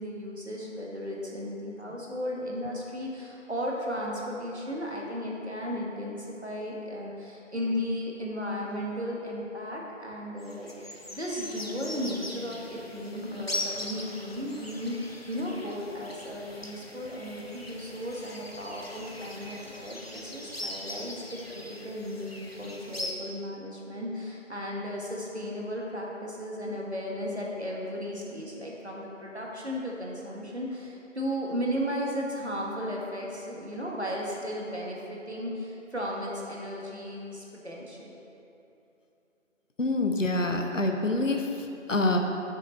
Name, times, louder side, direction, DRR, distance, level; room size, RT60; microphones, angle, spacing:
voice 1, 0.0-38.2, equal, 60° right, -3 dB, 1.5 m, -35 dB
sound 1, 10.4-23.1, left 1 dB, 50° left, 0.7 m, -40 dB
voice 2, 39.8-42.2, left 2 dB, 80° left, 3 dB, 0.9 m, -26 dB
7.5 x 6.4 x 4.0 m, 2.8 s
figure-of-eight pair, 180°, 38 cm